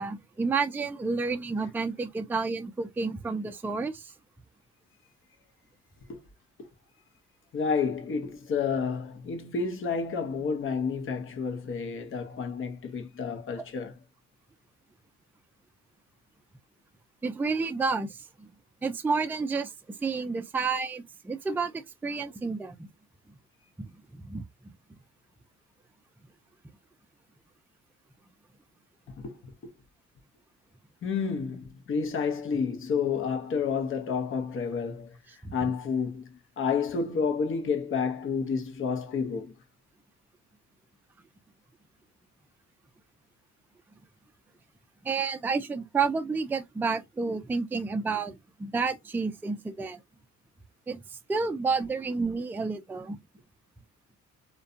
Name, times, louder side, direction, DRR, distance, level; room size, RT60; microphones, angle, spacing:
voice 1, 0.0-4.1 17.2-18.5 18.8-22.9 24.1-24.4 35.4-35.5 45.0-50.0 50.9-53.2, right 4 dB, 5° right, 0.3 m, -30 dB
voice 2, 7.5-14.0 29.2-29.7 31.0-39.5, left 5 dB, 45° left, 0.7 m, -30 dB
2.6 x 2.2 x 2.4 m
cardioid pair, 90°, 30 cm